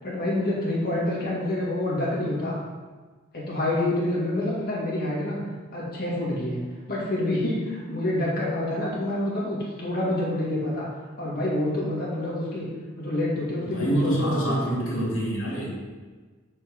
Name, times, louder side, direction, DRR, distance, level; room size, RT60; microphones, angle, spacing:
voice 1, 0.0-2.6 3.3-5.4 5.7-6.6 6.9-10.9 11.2-12.7 13.0-14.8, left 1 dB, 45° left, -6 dB, 2.3 m, -27 dB
voice 2, 13.7-15.7, right 1 dB, 65° left, -4 dB, 2.4 m, -26 dB
7.5 x 4.4 x 5.5 m, 1.4 s
head